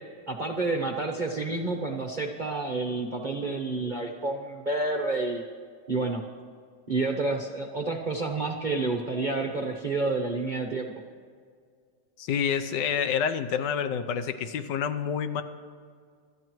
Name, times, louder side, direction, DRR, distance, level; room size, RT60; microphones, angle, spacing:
voice 1, 0.3-5.4 5.9-6.2 6.9-10.9, right 3 dB, 40° right, 2 dB, 0.7 m, -29 dB
voice 2, 12.2-15.4, left 7 dB, 80° left, 10 dB, 1.4 m, -28 dB
25.5 x 13.0 x 3.1 m, 2.1 s
omnidirectional pair, 2.0 m